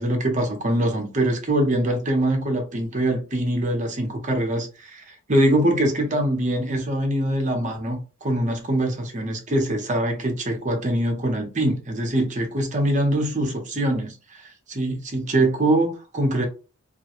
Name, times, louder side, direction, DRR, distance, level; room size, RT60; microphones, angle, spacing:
voice 1, 0.0-16.5, right 1 dB, 35° right, 0.7 m, -23 dB
2.4 x 2.2 x 2.8 m
head